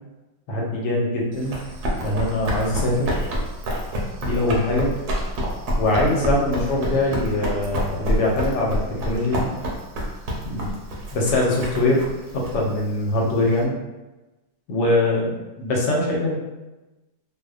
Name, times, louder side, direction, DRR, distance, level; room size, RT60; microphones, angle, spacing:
voice 1, 0.5-1.6 2.0-3.3 4.2-4.9 5.8-9.5 10.4-10.8 11.1-12.1 12.3-13.8 14.7-16.4, left 1 dB, 85° left, -2 dB, 1.2 m, -22 dB
Run, 1.3-13.6, equal, 70° right, 1.1 m, -28 dB
2.8 x 2.0 x 2.3 m, 1.1 s
omnidirectional pair, 1.8 m